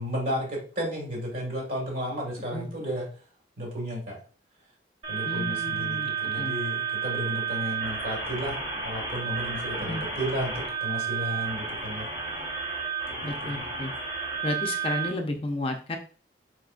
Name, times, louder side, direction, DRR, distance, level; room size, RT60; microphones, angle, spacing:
voice 1, 0.0-3.1 3.6-4.2 5.1-12.1 13.1-13.6, equal, 50° right, 0 dB, 2.0 m, -33 dB
sound 1, 5.0-15.1, right 6 dB, 35° right, 1.7 m, -32 dB
voice 2, 5.2-6.6 9.8-10.0 13.2-13.9 14.4-16.0, left 2 dB, 30° left, 3 dB, 0.6 m, -32 dB
4.6 x 4.4 x 2.5 m, 0.41 s
head